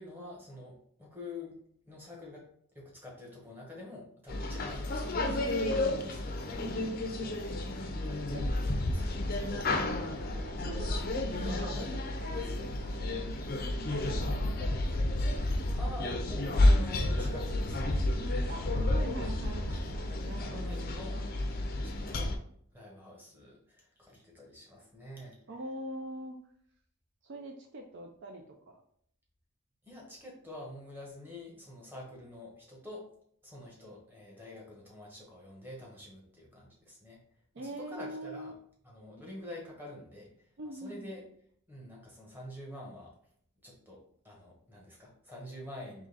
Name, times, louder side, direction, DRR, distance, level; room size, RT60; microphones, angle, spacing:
voice 1, 0.0-1.6 1.9-2.4 2.7-9.7 11.3-12.1 15.8-18.1 20.1-22.3 22.7-25.4 29.8-33.1 33.4-37.2 37.6-38.5 38.8-41.2 41.7-43.1 43.6-46.1, left 1 dB, 10° right, -2 dB, 1.1 m, -47 dB
sound 1, 4.3-22.4, left 1 dB, 40° left, 0.5 m, -31 dB
voice 2, 10.0-11.0 11.4-13.2 13.9-15.0 18.5-21.2 25.5-26.4 27.2-28.8 37.5-38.5 40.6-41.1, right 1 dB, 55° right, 3 dB, 0.4 m, -44 dB
3.8 x 3.1 x 3.9 m, 0.65 s
head